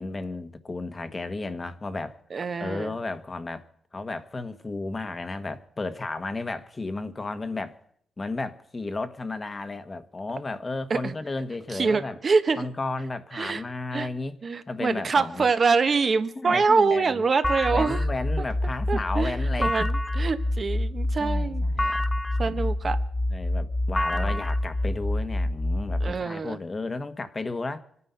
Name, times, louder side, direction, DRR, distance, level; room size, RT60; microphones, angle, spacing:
voice 1, 0.0-2.2 2.6-3.7 3.9-7.8 8.2-12.2 12.6-14.4 14.7-15.5 16.3-17.2 17.7-19.9 21.2-22.0 22.4-22.7 23.3-27.8, left 3 dB, 30° left, 1.3 m, -33 dB
voice 2, 2.3-2.9 10.9-11.1 11.8-12.7 13.3-13.6 13.9-14.1 14.4-18.0 18.9-22.0 22.4-23.0 24.2-24.3 26.0-26.6, right 4 dB, 45° right, 1.2 m, -25 dB
sound 1, 17.4-26.1, left 1 dB, 10° left, 0.7 m, -26 dB
25.5 x 9.8 x 5.7 m
cardioid pair, 70°, 0 cm